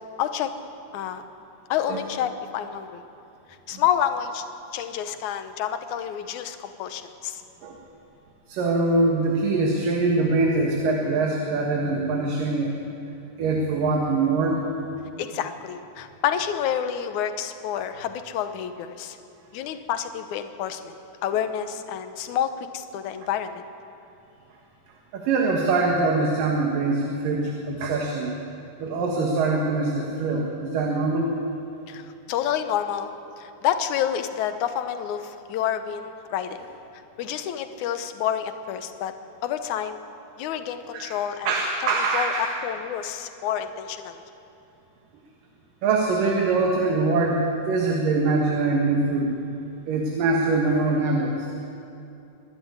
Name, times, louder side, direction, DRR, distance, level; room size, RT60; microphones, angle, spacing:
voice 1, 0.2-0.5 0.9-1.2 1.7-3.0 3.7-4.4 4.7-7.4 15.2-19.2 19.5-20.9 21.2-23.6 31.9-33.1 33.4-36.6 37.2-39.1 39.4-40.0 40.4-41.5 41.8-44.2, left 9 dB, 70° left, 9 dB, 2.1 m, -28 dB
voice 2, 8.5-12.7 13.4-14.6 25.1-28.3 28.8-31.4 40.9-41.2 41.4-42.5 45.8-49.4 49.9-51.5, right 3 dB, 70° right, 0 dB, 3.2 m, -23 dB
24.5 x 11.5 x 9.6 m, 2.8 s
omnidirectional pair, 4.1 m